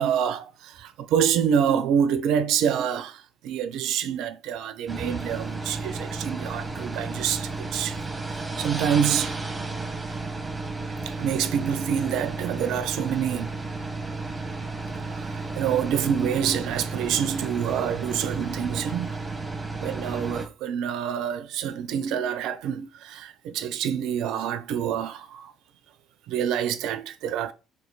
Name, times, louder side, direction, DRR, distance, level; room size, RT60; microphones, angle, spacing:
voice 1, 0.0-8.0 8.3-9.4 11.1-13.5 15.1-19.2 19.8-25.5 26.3-27.5, right 8 dB, 65° right, 0.4 m, -27 dB
sound 1, 4.9-20.5, right 3 dB, 15° right, 1.1 m, -33 dB
3.1 x 2.5 x 3.7 m
hypercardioid pair, 55°, 0 cm